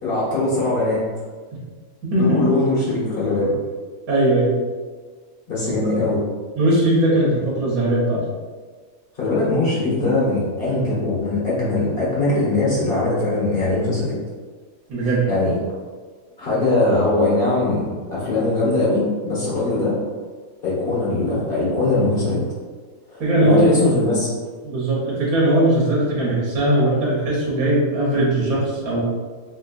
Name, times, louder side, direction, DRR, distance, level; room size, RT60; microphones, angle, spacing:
voice 1, 0.0-1.0 2.1-3.5 5.5-6.2 9.1-14.2 15.0-15.6 16.4-20.0 20.6-22.4 23.1-24.3, left 2 dB, 40° left, -8 dB, 1.5 m, -21 dB
voice 2, 4.1-4.5 6.6-8.2 14.9-15.3 23.2-23.7 24.6-29.0, right 1 dB, 75° right, -5 dB, 1.5 m, -19 dB
3.5 x 3.2 x 2.5 m, 1.5 s
omnidirectional pair, 1.5 m